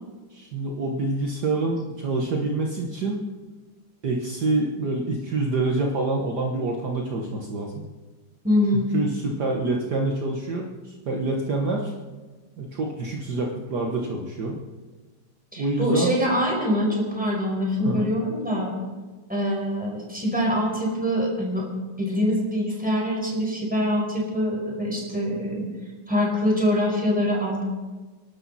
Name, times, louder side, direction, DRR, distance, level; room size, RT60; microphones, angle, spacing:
voice 1, 0.3-3.2 4.0-7.9 8.9-11.9 12.6-14.6 15.6-16.1 17.8-18.1, right 2 dB, 55° right, 0 dB, 1.8 m, -26 dB
voice 2, 8.4-8.9 15.5-18.7 19.3-21.7 22.0-25.7 26.1-27.6, equal, 5° right, -2 dB, 4.9 m, -24 dB
28.0 x 12.0 x 4.2 m, 1.3 s
omnidirectional pair, 2.2 m